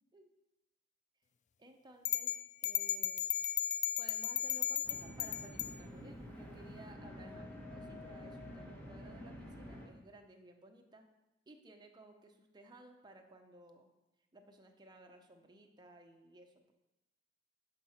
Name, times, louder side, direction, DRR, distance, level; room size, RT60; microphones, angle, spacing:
voice 1, 1.6-2.3 2.6-3.3 4.0-11.0 11.5-13.9 14.3-16.7, right 1 dB, 25° right, 3 dB, 0.9 m, -58 dB
sound 1, 2.0-5.7, left 11 dB, 40° left, 0.3 m, -35 dB
sound 2, 4.8-9.9, left 1 dB, 10° left, 1.6 m, -49 dB
10.5 x 4.8 x 5.7 m, 1.0 s
head